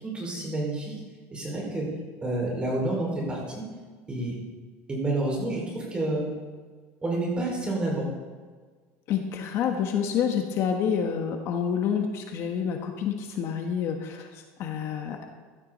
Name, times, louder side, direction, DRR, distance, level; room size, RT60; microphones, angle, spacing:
voice 1, 0.0-0.9 1.3-1.8 2.2-3.6 4.1-4.3 4.9-6.3 7.0-8.1, right 2 dB, 15° right, -3 dB, 5.4 m, -29 dB
voice 2, 9.1-15.2, left 7 dB, 45° left, 4 dB, 1.3 m, -28 dB
16.0 x 12.5 x 4.2 m, 1.5 s
cardioid pair, 145°, 6 cm